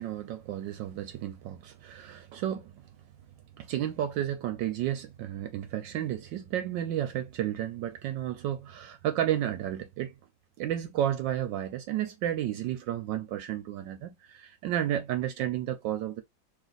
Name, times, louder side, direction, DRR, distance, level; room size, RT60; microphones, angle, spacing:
voice 1, 0.0-2.7 3.6-10.1 10.6-16.2, right 11 dB, 75° right, 1.2 m, -32 dB
3.3 x 3.1 x 3.9 m
omnidirectional pair, 2.1 m